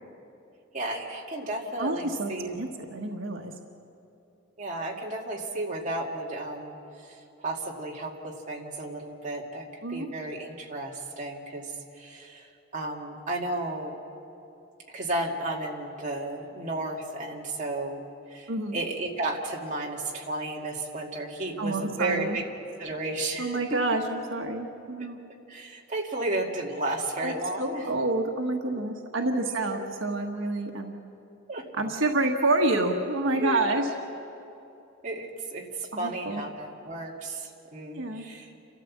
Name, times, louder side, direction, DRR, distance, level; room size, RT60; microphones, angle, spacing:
voice 1, 0.7-2.6 4.6-6.8 7.0-14.0 14.9-22.4 22.8-23.6 25.0-25.1 25.5-27.8 29.4-29.8 31.5-31.7 33.4-33.9 35.0-38.5, right 2 dB, 40° right, -1 dB, 2.3 m, -33 dB
voice 2, 1.8-3.5 9.8-10.1 18.5-18.8 21.6-22.4 23.4-25.2 27.2-31.0 31.8-33.9 35.9-36.4 37.9-38.2, right 2 dB, 80° right, 2 dB, 1.4 m, -28 dB
30.0 x 13.5 x 7.4 m, 2.8 s
head